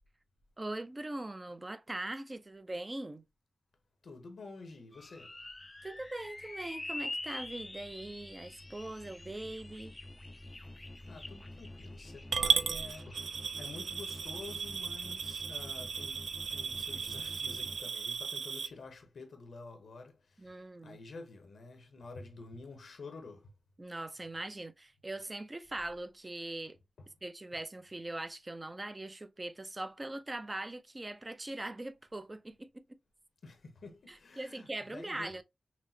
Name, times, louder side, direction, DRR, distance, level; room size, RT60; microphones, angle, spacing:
voice 1, 0.6-3.2 5.8-10.0 20.4-21.0 23.8-26.8 27.2-33.0 34.1-35.4, right 2 dB, 25° right, 0.6 m, -41 dB
voice 2, 4.0-5.4 11.1-23.5 27.0-27.1 33.4-35.3, left 3 dB, 75° left, 0.9 m, -49 dB
sound 1, 4.9-17.8, left 2 dB, 25° left, 0.5 m, -46 dB
Coin (dropping) / Glass, 12.3-18.7, right 6 dB, 85° right, 0.4 m, -35 dB
6.0 x 2.1 x 2.8 m
cardioid pair, 65°, 0 cm